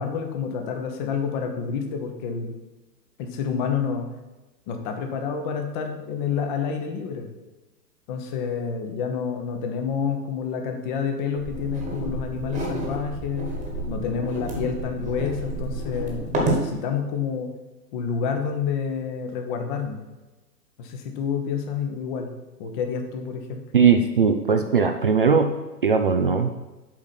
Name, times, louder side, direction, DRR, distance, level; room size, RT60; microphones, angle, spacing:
voice 1, 0.0-2.5 3.2-4.1 4.7-7.3 8.1-13.5 13.9-17.5 17.9-20.0 20.8-22.3 22.6-23.6, left 6 dB, 30° left, 4 dB, 1.0 m, -28 dB
sound 1, 11.4-16.7, right 1 dB, 15° right, 1.4 m, -30 dB
voice 2, 23.7-25.5 25.8-26.5, right 6 dB, 35° right, 6 dB, 0.4 m, -19 dB
7.3 x 5.0 x 5.9 m, 1.1 s
figure-of-eight pair, 115°, 50 cm